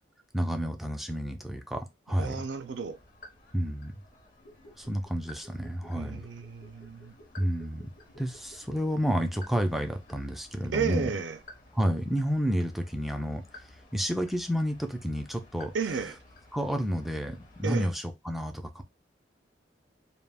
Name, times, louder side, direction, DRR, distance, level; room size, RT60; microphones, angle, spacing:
voice 1, 0.3-2.4 3.5-3.9 4.8-6.2 7.4-7.9 8.2-11.1 11.7-13.4 13.9-15.7 16.5-18.8, equal, ahead, 0.4 m, -30 dB
sound 1, 2.2-17.6, left 2 dB, 45° left, 0.7 m, -55 dB
voice 2, 2.2-3.0 5.9-7.1 10.7-11.4 15.7-16.2 17.6-17.9, right 5 dB, 80° right, 0.4 m, -32 dB
sound 2, 4.3-11.1 11.4-11.5, equal, 65° left, 1.0 m, -56 dB
2.3 x 2.1 x 3.4 m
head